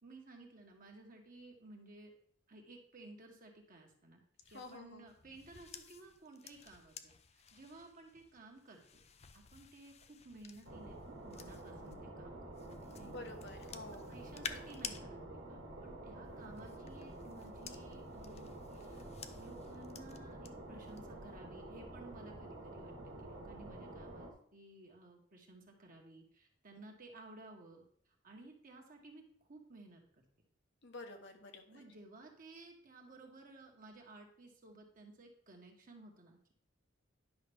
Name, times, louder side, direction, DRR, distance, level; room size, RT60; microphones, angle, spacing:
voice 1, 0.0-2.1 2.5-4.2 4.5-8.8 9.3-13.2 14.1-22.9 23.2-27.8 28.2-30.0 31.7-36.5, right 2 dB, 45° right, 1 dB, 1.5 m, -56 dB
sound 1, 4.4-12.0 12.5-15.0 16.3-20.5 20.9-21.2, left 7 dB, 35° left, 0.5 m, -52 dB
voice 2, 4.5-5.0 13.0-14.1 30.8-31.8, left 2 dB, 65° left, 4 dB, 1.2 m, -49 dB
sound 2, 10.6-24.3, right 1 dB, 65° right, 1.8 m, -49 dB
10.5 x 5.8 x 3.6 m, 0.63 s
head